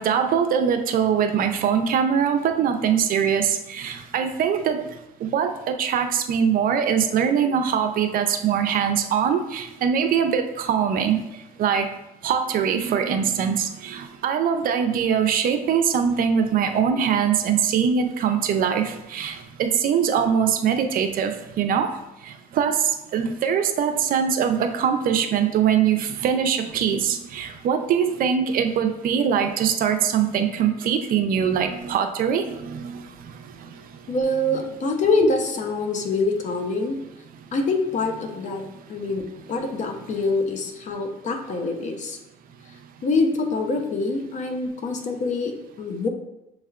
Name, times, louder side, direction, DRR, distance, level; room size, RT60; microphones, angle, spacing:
voice 1, 0.0-4.8 5.2-11.2 11.6-11.9 12.2-21.9 22.2-33.3, right 7 dB, 55° right, 7 dB, 0.5 m, -22 dB
voice 2, 34.1-37.0 37.5-42.2 43.0-46.1, left 3 dB, 45° left, 4 dB, 0.7 m, -25 dB
6.4 x 3.2 x 2.4 m, 0.89 s
cardioid pair, 110°, 17 cm